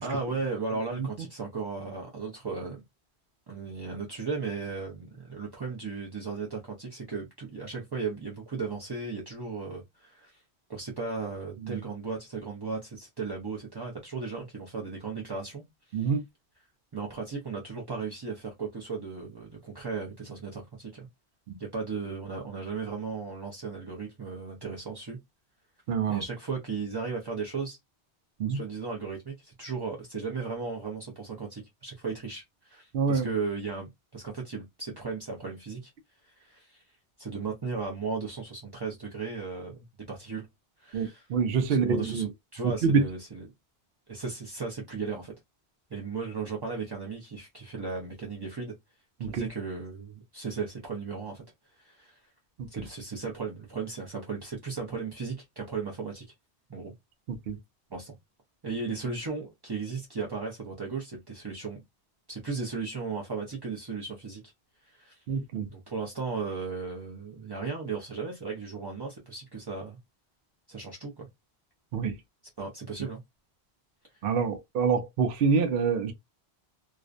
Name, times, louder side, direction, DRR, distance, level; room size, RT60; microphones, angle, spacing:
voice 1, 0.0-2.8 3.5-10.4 10.7-16.2 16.9-21.1 21.6-25.2 26.1-27.8 28.5-35.9 36.2-36.8 37.2-40.5 40.8-41.3 41.7-42.3 42.5-43.5 44.1-45.3 45.9-48.7 49.2-51.4 51.7-52.2 52.7-56.2 56.7-56.9 57.9-58.1 58.6-61.8 62.3-64.5 64.8-65.2 65.7-70.0 70.7-71.3 72.6-73.2, right 4 dB, 35° right, 0.4 m, -36 dB
voice 2, 25.9-26.2 28.4-28.6 32.9-33.3 40.9-42.3 42.8-43.0 49.2-49.5 52.8-52.9 57.5-57.6 65.3-65.7 71.9-72.1 74.2-76.1, right 5 dB, 65° right, 0.7 m, -26 dB
2.4 x 2.1 x 2.4 m
omnidirectional pair, 1.1 m